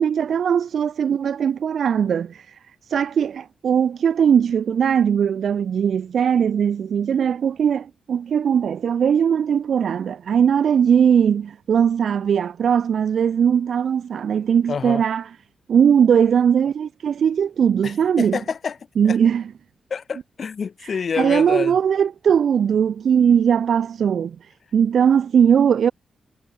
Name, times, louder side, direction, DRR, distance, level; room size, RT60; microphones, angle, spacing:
voice 1, 0.0-2.6 2.9-15.3 15.7-18.4 19.0-19.5 21.1-25.9, right 8 dB, 70° right, 1.1 m, -19 dB
voice 2, 14.7-15.0 17.8-18.8 19.1-19.2 19.9-21.8, left 6 dB, 55° left, 4.1 m, -27 dB
cardioid pair, 100°, 0 cm